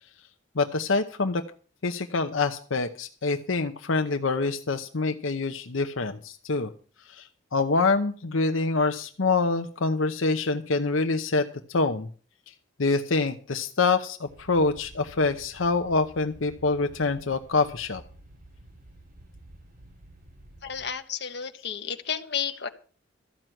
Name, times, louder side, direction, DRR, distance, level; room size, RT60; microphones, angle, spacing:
voice 1, 0.6-1.4 1.8-6.7 7.1-12.1 12.8-18.0, left 3 dB, 75° left, 7 dB, 0.8 m, -26 dB
sound 1, 14.3-20.9, right 1 dB, 45° right, 2.6 m, -51 dB
voice 2, 20.6-22.7, left 7 dB, 55° left, 7 dB, 1.2 m, -32 dB
13.5 x 6.1 x 9.1 m, 0.41 s
head